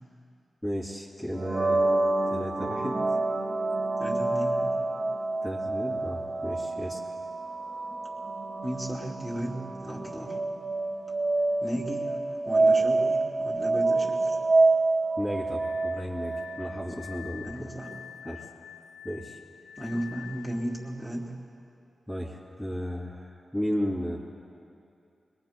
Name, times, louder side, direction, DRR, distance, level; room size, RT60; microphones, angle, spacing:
voice 1, 0.6-1.9 2.2-3.2 5.4-7.0 15.2-17.7 18.2-18.5 19.0-19.4 22.1-24.2, equal, 10° left, -8 dB, 2.5 m, -34 dB
sound 1, 1.3-17.0, right 2 dB, 55° right, 1.3 m, -27 dB
voice 2, 4.0-4.7 8.6-10.4 11.6-14.4 17.4-17.9 19.8-21.4, equal, 10° right, -5 dB, 3.3 m, -35 dB
Glass, 15.6-20.6, left 9 dB, 75° left, 0.6 m, -46 dB
24.5 x 22.5 x 2.2 m, 2.5 s
wide cardioid pair, 100°, 0 cm